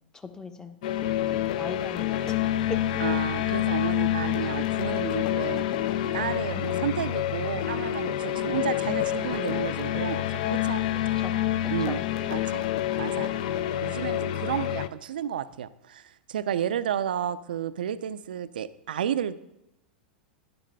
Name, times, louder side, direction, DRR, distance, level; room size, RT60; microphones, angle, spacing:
voice 1, 0.1-0.8 1.2-2.4 2.7-2.8 3.6-3.7 6.5-6.8 11.2-11.3 11.9-12.0 13.6-13.7 14.4-14.6, left 3 dB, 10° left, 9 dB, 0.7 m, -39 dB
sound 1, 0.8-14.9, left 12 dB, 55° left, 0.4 m, -27 dB
voice 2, 3.0-5.7 6.1-10.9 11.7-12.0 12.3-12.7 13.0-13.4 13.8-19.4, right 9 dB, 70° right, 15 dB, 0.4 m, -32 dB
12.0 x 10.0 x 2.2 m, 0.89 s
figure-of-eight pair, 90°, 5 cm